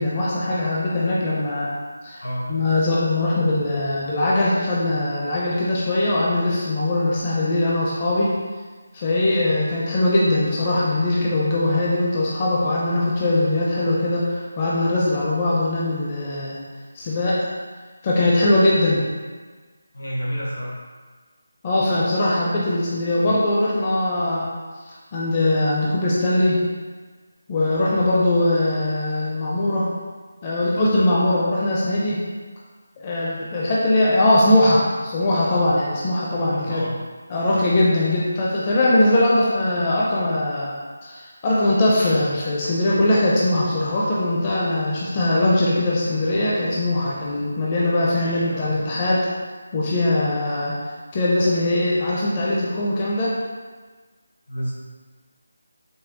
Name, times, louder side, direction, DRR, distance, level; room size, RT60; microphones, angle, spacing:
voice 1, 0.0-1.7 2.0-2.2 2.5-8.3 8.9-16.6 16.9-17.5 18.0-19.0 21.6-24.5 24.9-26.6 27.5-29.9 30.4-32.2 33.0-36.8 37.3-40.7 41.0-49.3 49.7-50.8 51.1-53.3, left 1 dB, 30° left, -6 dB, 0.5 m, -21 dB
voice 2, 2.2-2.6 19.9-20.8 36.3-37.0 48.1-49.0 54.5-54.7, equal, 80° left, -5 dB, 1.1 m, -30 dB
5.3 x 2.1 x 2.8 m, 1.4 s
figure-of-eight pair, 160°, 0 cm